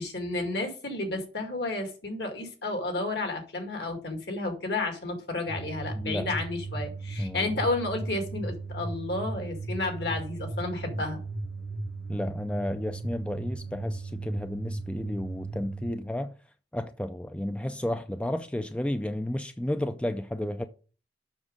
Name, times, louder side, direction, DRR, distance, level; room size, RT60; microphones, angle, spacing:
voice 1, 0.0-11.2, left 2 dB, 60° left, 2.2 m, -31 dB
sound 1, 5.5-15.9, right 2 dB, 90° left, 3.8 m, -36 dB
voice 2, 6.0-6.3 7.2-7.5 12.1-16.3 16.7-20.6, left 1 dB, 5° left, 0.3 m, -32 dB
7.3 x 6.2 x 5.1 m
head